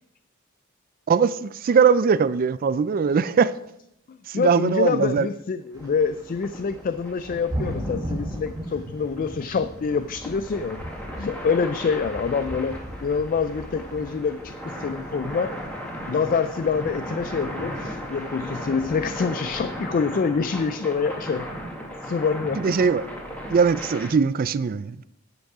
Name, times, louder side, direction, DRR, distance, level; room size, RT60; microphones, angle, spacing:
voice 1, 1.1-3.5 4.3-5.3 22.6-23.0 23.5-25.1, right 6 dB, 45° right, 0.4 m, -21 dB
voice 2, 4.1-10.8 11.2-15.5 16.1-21.5 22.0-22.8, left 5 dB, 40° left, 0.3 m, -26 dB
sound 1, 5.7-19.7, equal, 15° right, 2.1 m, -38 dB
sound 2, 5.8-24.1, equal, 5° left, 2.0 m, -36 dB
10.5 x 7.9 x 4.8 m
head